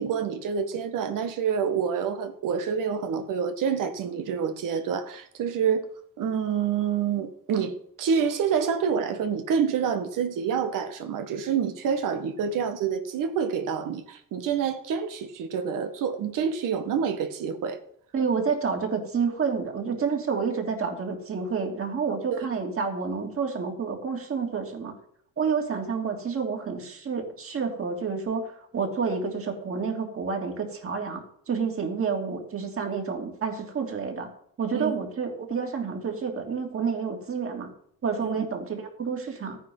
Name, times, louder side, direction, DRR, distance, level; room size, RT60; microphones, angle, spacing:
voice 1, 0.0-5.9 6.2-17.8 22.3-22.5 34.8-34.9 38.2-38.5, right 7 dB, 65° right, 1.8 m, -27 dB
voice 2, 18.1-24.9 25.4-34.3 34.6-37.7 38.0-39.6, right 5 dB, 40° right, 3.2 m, -29 dB
14.0 x 9.4 x 5.7 m
cardioid pair, 115°, 34 cm